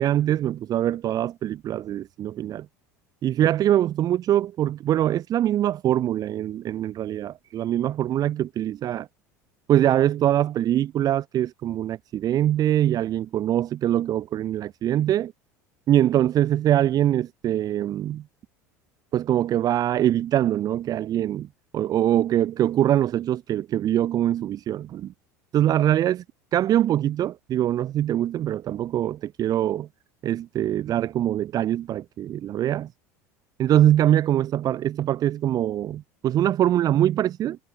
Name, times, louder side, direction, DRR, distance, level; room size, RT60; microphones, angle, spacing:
voice 1, 0.0-2.7 3.2-9.1 9.7-15.3 15.9-18.2 19.1-21.5 21.7-25.1 25.5-26.2 26.5-29.9 30.2-32.9 33.6-37.6, right 12 dB, 45° right, 5.4 m, -23 dB
hypercardioid pair, 80°, 9 cm